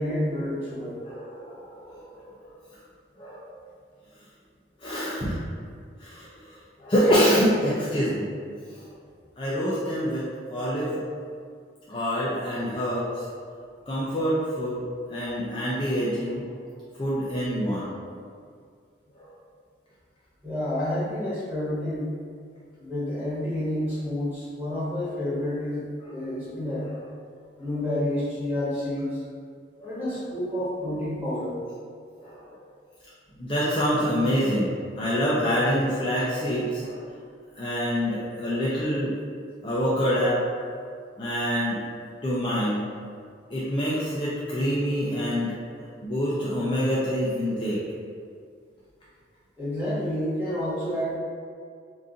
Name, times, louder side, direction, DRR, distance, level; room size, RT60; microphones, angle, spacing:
voice 1, 0.0-1.0 20.4-22.1 22.8-25.8 26.1-26.9 27.6-29.2 29.8-31.6 38.2-38.3 41.7-42.0 49.6-51.1, left 1 dB, 10° right, -11 dB, 1.4 m, -29 dB
voice 2, 1.0-2.2 3.2-3.4 4.8-5.4 6.0-6.3 6.8-8.3 8.7-8.8 9.4-11.0 11.9-13.2 13.9-14.8 15.1-16.5 17.0-17.9 26.0-26.1 29.8-30.0 32.2-32.6 33.4-37.0 37.6-39.1 39.6-40.4 41.2-41.8 42.2-42.8 43.5-45.6 46.0-47.8, equal, 25° left, -8 dB, 0.5 m, -26 dB
3.9 x 2.6 x 3.7 m, 2.2 s
head